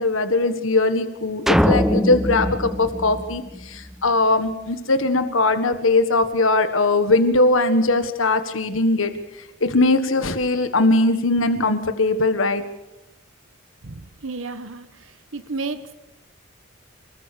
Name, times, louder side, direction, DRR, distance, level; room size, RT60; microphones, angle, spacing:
voice 1, 0.0-9.1 9.4-12.6, left 2 dB, 80° left, 9 dB, 1.6 m, -20 dB
sound 1, 1.5-3.9, equal, ahead, 0.9 m, -22 dB
voice 2, 13.8-15.9, right 3 dB, 75° right, 10 dB, 1.3 m, -33 dB
28.5 x 21.5 x 6.9 m, 0.88 s
head